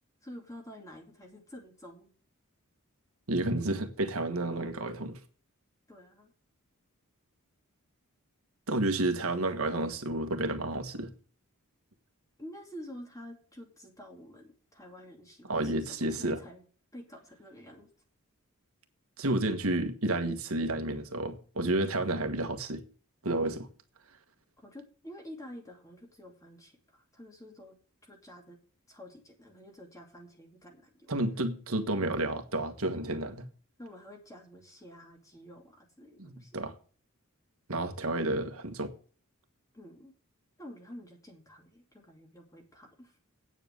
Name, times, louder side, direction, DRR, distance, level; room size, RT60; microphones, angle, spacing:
voice 1, 0.2-2.1 5.9-6.3 12.4-16.6 16.9-17.9 24.6-27.7 28.0-28.6 28.9-31.1 33.8-36.5 39.7-40.1 40.6-43.2, equal, 15° left, 2.6 m, -49 dB
voice 2, 3.3-5.2 8.7-11.1 15.4-16.4 19.2-22.8 23.2-23.7 31.1-33.5 36.2-36.7 37.7-38.9, right 2 dB, 70° right, 1.5 m, -31 dB
9.0 x 7.3 x 8.1 m
head